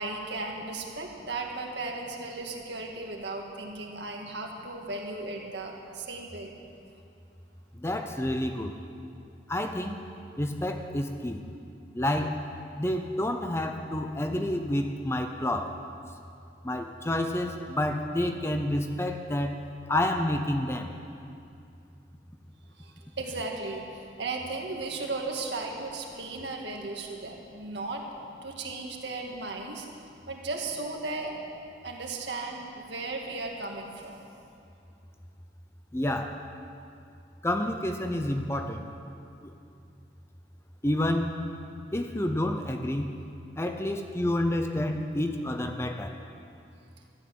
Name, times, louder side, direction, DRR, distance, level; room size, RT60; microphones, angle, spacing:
voice 1, 0.0-6.5 22.8-28.0 28.4-29.9 30.3-31.4 31.8-34.2, right 3 dB, 70° right, 1 dB, 1.9 m, -36 dB
voice 2, 7.8-8.7 9.5-10.0 10.4-11.4 11.9-12.4 12.8-15.8 16.6-19.6 19.9-20.9 35.9-36.4 37.4-38.8 39.4-39.5 40.8-41.3 41.9-43.1 43.6-46.2, left 1 dB, 15° left, 5 dB, 0.6 m, -29 dB
13.5 x 11.5 x 7.7 m, 2.5 s
head